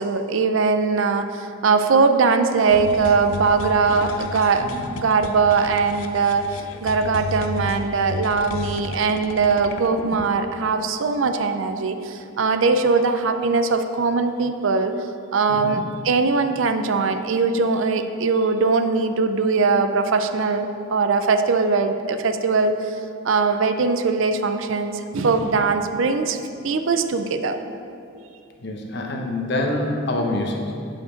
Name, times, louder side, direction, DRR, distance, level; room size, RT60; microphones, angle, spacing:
voice 1, 0.0-4.7 5.0-6.4 6.8-14.9 15.3-23.0 23.2-26.4 26.6-27.6, right 4 dB, 70° right, 8 dB, 0.5 m, -21 dB
sound 1, 2.7-10.3, left 3 dB, 80° left, 0.5 m, -33 dB
voice 2, 15.5-15.8 28.6-30.6, left 1 dB, 50° left, 1 dB, 1.0 m, -26 dB
9.2 x 5.2 x 5.1 m, 2.6 s
head